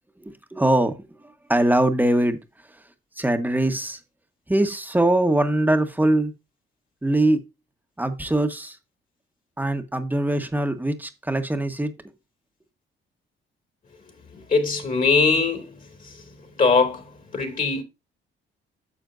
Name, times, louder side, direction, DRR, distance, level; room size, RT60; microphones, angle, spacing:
voice 1, 0.2-1.0 1.5-2.4 3.2-4.0 4.5-6.3 7.0-7.4 8.0-8.8 9.6-11.9, right 1 dB, 10° right, 1.3 m, -22 dB
voice 2, 14.5-15.7 16.6-17.0 17.3-17.8, left 4 dB, 40° left, 2.6 m, -20 dB
10.5 x 6.7 x 2.6 m
cardioid pair, 90°, 20 cm